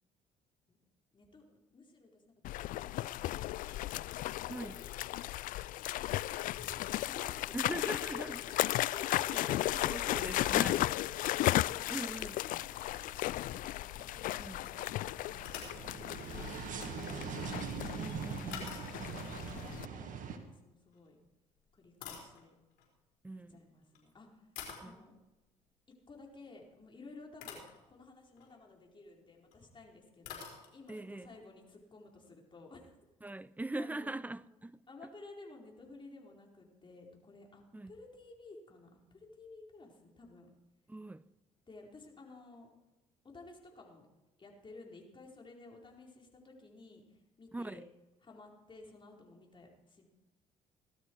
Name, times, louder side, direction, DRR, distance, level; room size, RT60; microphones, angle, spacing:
voice 1, 1.1-4.0 4.3-4.9 6.0-9.9 10.2-16.5 16.8-17.9 18.6-19.0 19.3-21.2 21.7-22.5 23.3-24.5 24.8-25.1 25.9-33.0 33.8-34.1 34.9-40.5 41.7-42.7 43.2-44.0 44.4-47.8 48.2-50.1, left 3 dB, 30° left, 4.5 m, -55 dB
sound 1, 2.4-19.9, left 15 dB, 60° left, 0.4 m, -35 dB
voice 2, 4.5-4.8 7.5-10.9 11.9-12.5 14.4-14.6 18.0-18.7 23.2-23.6 24.8-25.0 30.9-31.3 33.2-34.8 37.7-37.9 40.9-41.3 47.5-47.8, right 2 dB, 10° right, 0.6 m, -42 dB
sound 2, 11.2-20.4, right 7 dB, 60° right, 1.9 m, -44 dB
sound 3, 15.4-15.9 18.5-19.2 20.9-21.1 21.7-22.9 23.8-24.0 24.5-25.0 26.8-26.9 27.4-27.8 28.3-28.6 29.5-29.6 29.8-29.9 30.2-31.0, left 7 dB, 80° left, 4.4 m, -48 dB
17.5 x 12.5 x 4.7 m
hypercardioid pair, 65°, 16 cm